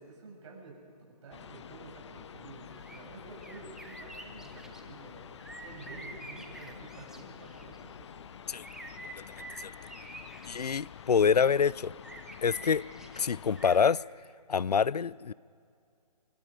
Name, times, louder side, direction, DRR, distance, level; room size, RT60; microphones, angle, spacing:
voice 1, 0.0-5.3 5.6-8.1, right 3 dB, 50° right, 7.6 m, -50 dB
sound 1, 1.3-13.9, left 8 dB, 45° left, 0.8 m, -48 dB
sound 2, 2.7-3.0 3.4-4.8 5.4-7.8 8.5-11.0 12.0-13.2 13.6-13.9, right 2 dB, ahead, 1.0 m, -47 dB
voice 2, 10.5-11.9 12.4-12.8 13.2-14.0 14.5-15.3, left 6 dB, 85° left, 0.5 m, -26 dB
26.5 x 24.0 x 5.1 m
figure-of-eight pair, 145°, 20 cm